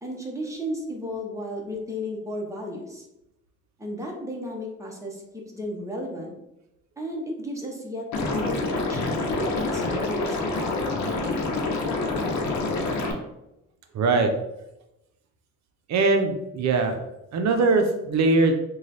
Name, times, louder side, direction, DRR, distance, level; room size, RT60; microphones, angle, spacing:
voice 1, 0.0-3.1 3.8-6.3 7.0-10.7, equal, 10° right, -1 dB, 0.9 m, -34 dB
Liquid, 8.1-13.1, left 3 dB, 65° left, 0.8 m, -27 dB
voice 2, 13.9-14.3 15.9-16.9 17.3-18.5, right 3 dB, 65° right, 5 dB, 0.6 m, -21 dB
3.1 x 2.3 x 4.0 m, 0.89 s
cardioid pair, 90°, 30 cm